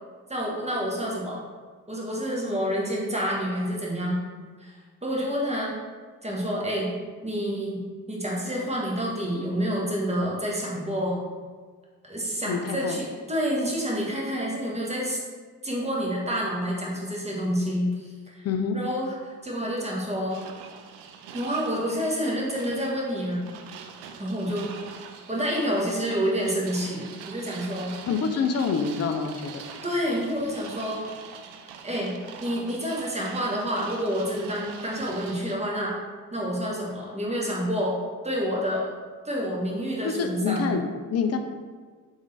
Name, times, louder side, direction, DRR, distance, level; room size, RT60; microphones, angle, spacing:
voice 1, 0.3-1.4 1.9-4.2 4.6-5.7 6.2-6.9 7.2-7.8 8.1-11.2 12.0-15.2 15.6-18.5 18.7-20.4 21.3-23.5 24.2-24.8 25.3-27.9 29.8-31.0 31.8-36.0 36.3-37.9 38.2-38.9 39.2-40.8, equal, 15° right, -3 dB, 1.3 m, -28 dB
voice 2, 12.5-13.0 18.4-18.8 28.1-29.6 40.0-41.4, left 5 dB, 35° left, 6 dB, 0.5 m, -27 dB
sound 1, 20.3-35.6, right 7 dB, 70° right, 0.5 m, -44 dB
3.6 x 3.6 x 3.3 m, 1.5 s
hypercardioid pair, 45°, 45 cm